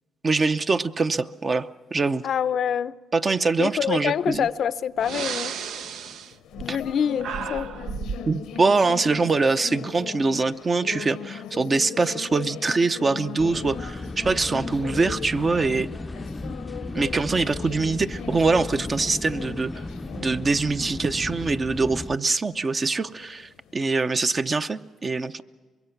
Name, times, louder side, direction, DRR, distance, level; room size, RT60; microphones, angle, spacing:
voice 1, 0.2-2.2 3.1-4.5 6.7-6.8 8.3-15.9 16.9-19.7 20.1-25.4, right 3 dB, 35° right, 0.7 m, -24 dB
voice 2, 2.2-2.9 3.6-5.5 6.6-7.7, left 8 dB, 65° left, 0.6 m, -26 dB
Breathing, 4.4-4.5 5.0-6.9 7.2-8.3, right 7 dB, 75° right, 0.7 m, -33 dB
sound 1, 5.6-24.0, left 8 dB, 90° left, 0.9 m, -39 dB
sound 2, 13.4-22.2, left 2 dB, 15° left, 0.5 m, -35 dB
24.5 x 22.0 x 5.9 m
cardioid pair, 90°, 0 cm